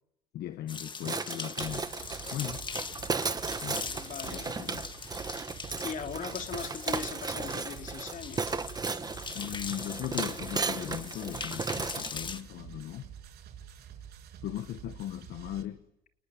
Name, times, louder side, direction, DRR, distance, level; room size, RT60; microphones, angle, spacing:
voice 1, 0.3-1.9 2.3-2.7 3.6-4.9 9.3-13.1 14.4-15.8, left 12 dB, 70° left, 1.1 m, -38 dB
sound 1, 0.7-12.4, left 5 dB, 30° left, 1.6 m, -42 dB
sound 2, 1.0-12.1, right 4 dB, 25° right, 1.6 m, -35 dB
sound 3, 1.6-15.6, right 8 dB, 70° right, 6.3 m, -48 dB
voice 2, 3.8-4.6 5.8-8.6, left 6 dB, 50° left, 3.5 m, -39 dB
29.0 x 20.0 x 9.6 m
cardioid pair, 110°, 17 cm